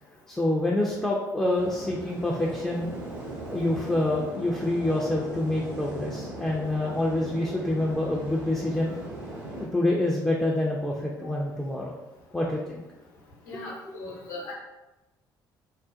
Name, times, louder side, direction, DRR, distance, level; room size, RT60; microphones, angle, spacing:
voice 1, 0.3-3.0 3.4-9.0 9.6-11.9 12.3-12.8 13.5-13.6, left 1 dB, 5° left, -4 dB, 0.3 m, -27 dB
sound 1, 1.5-9.6, right 1 dB, 75° right, 0.7 m, -39 dB
voice 2, 13.5-14.5, left 2 dB, 75° left, -4 dB, 0.7 m, -39 dB
2.4 x 2.1 x 2.5 m, 1.0 s
figure-of-eight pair, 50°, 11 cm